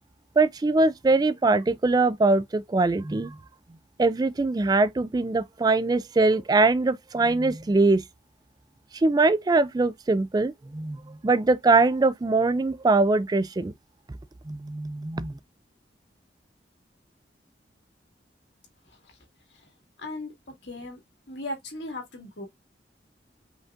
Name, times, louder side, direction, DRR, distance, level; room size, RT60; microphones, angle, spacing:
voice 1, 0.4-3.3 4.0-8.0 8.9-13.7 14.5-15.3, right 3 dB, 25° right, 0.3 m, -22 dB
voice 2, 20.0-20.3 20.6-21.0 21.3-22.5, left 1 dB, 90° left, 2.1 m, -36 dB
5.1 x 3.7 x 2.4 m
head